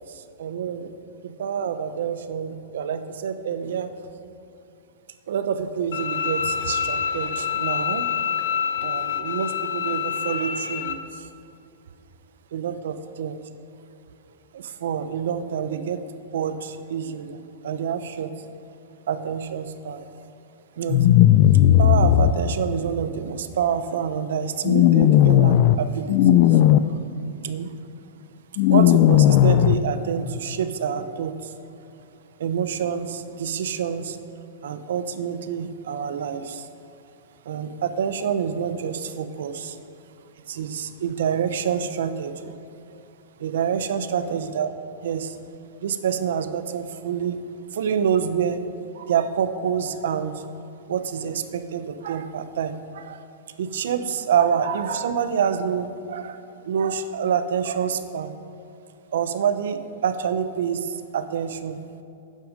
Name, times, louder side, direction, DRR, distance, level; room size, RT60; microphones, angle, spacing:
voice 1, 0.0-0.9 1.2-3.9 5.3-8.1 8.8-11.3 12.5-13.4 14.5-16.0 16.3-18.3 19.1-20.1 20.8-21.1 21.7-26.6 26.9-27.0 27.4-27.7 28.7-31.5 32.4-34.2 34.6-36.7 37.4-39.8 40.5-42.5 43.4-44.7 45.0-45.4 45.8-47.4 47.7-48.6 48.9-50.4 50.9-53.3 53.6-58.3 59.1-61.8, right 7 dB, 75° right, 11 dB, 0.8 m, -27 dB
Bowed string instrument, 5.9-10.9, left 8 dB, 70° left, 0.8 m, -27 dB
sound 1, 20.9-22.3 24.6-25.8 26.1-26.8 28.6-29.8, left 12 dB, 40° left, 0.4 m, -15 dB
12.5 x 9.2 x 5.2 m, 2.6 s
supercardioid pair, 170°, 0 cm